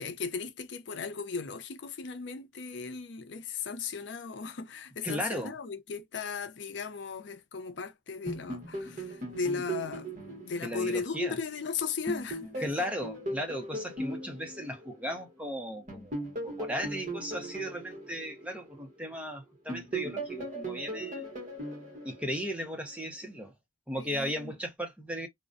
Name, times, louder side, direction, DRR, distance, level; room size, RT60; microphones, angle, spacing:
voice 1, 0.0-12.7 13.7-14.0 23.9-24.5, left 5 dB, 65° left, 0.5 m, -36 dB
voice 2, 5.0-5.5 10.6-11.4 12.6-21.3 22.0-23.5 23.9-25.3, equal, 5° right, 0.6 m, -36 dB
sound 1, 8.3-11.6 12.1-15.3 15.9-19.2 19.7-22.9, right 2 dB, 40° right, 1.0 m, -39 dB
2.4 x 2.1 x 2.4 m
head